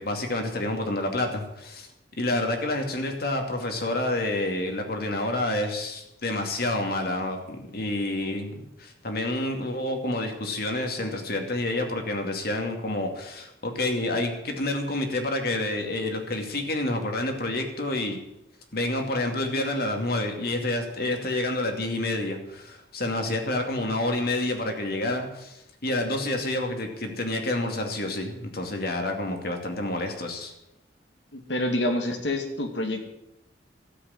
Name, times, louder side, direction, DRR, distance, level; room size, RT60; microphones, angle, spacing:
voice 1, 0.0-1.9 2.1-18.2 18.7-30.5, left 1 dB, 55° left, 3 dB, 2.6 m, -28 dB
voice 2, 31.3-33.1, left 1 dB, 80° left, 4 dB, 2.4 m, -27 dB
13.5 x 8.2 x 9.9 m, 0.87 s
head